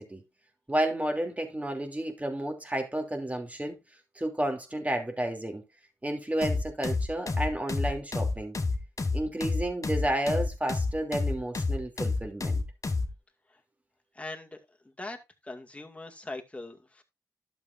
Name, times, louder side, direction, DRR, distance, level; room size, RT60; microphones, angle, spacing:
voice 1, 0.7-3.8 4.1-5.6 6.0-8.5 9.1-12.6, right 1 dB, 20° right, 3.1 m, -31 dB
sound 1, 6.4-13.1, left 3 dB, 45° left, 1.7 m, -29 dB
voice 2, 14.1-14.6 15.0-15.2 15.4-17.0, left 2 dB, 20° left, 2.2 m, -41 dB
12.0 x 7.3 x 2.7 m
cardioid pair, 55°, 7 cm